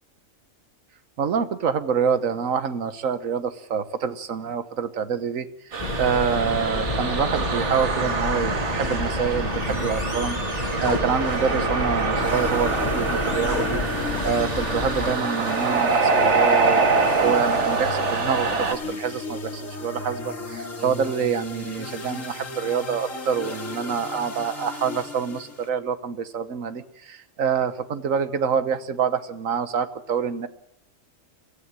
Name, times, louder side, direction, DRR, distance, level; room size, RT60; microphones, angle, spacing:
voice 1, 1.2-5.5 6.0-10.4 10.8-30.5, right 6 dB, 90° right, 12 dB, 1.5 m, -26 dB
sound 1, 5.7-18.7, right 4 dB, 60° right, 1.7 m, -25 dB
sound 2, 5.8-15.2, left 2 dB, 30° left, 1.6 m, -29 dB
sound 3, 12.2-25.7, left 3 dB, 75° left, 2.7 m, -35 dB
23.5 x 15.0 x 7.5 m, 0.72 s
omnidirectional pair, 1.4 m